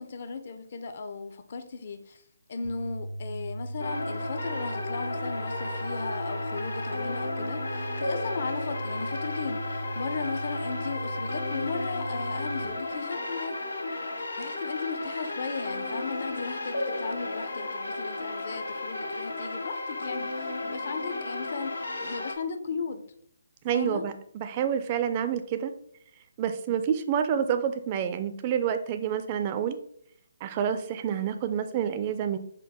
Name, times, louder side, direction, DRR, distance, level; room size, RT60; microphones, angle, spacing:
voice 1, 0.0-2.2 2.5-13.6 14.4-23.0 23.7-24.0, left 4 dB, 50° left, 8 dB, 0.5 m, -36 dB
sound 1, 2.6-12.7, right 1 dB, 85° right, 0.8 m, -37 dB
sound 2, 3.8-22.4, left 2 dB, 80° left, 0.8 m, -34 dB
voice 2, 23.6-25.7 26.4-29.8 30.4-32.4, right 8 dB, 30° right, 9 dB, 0.3 m, -28 dB
4.4 x 2.2 x 4.2 m, 0.67 s
figure-of-eight pair, 150°, 0 cm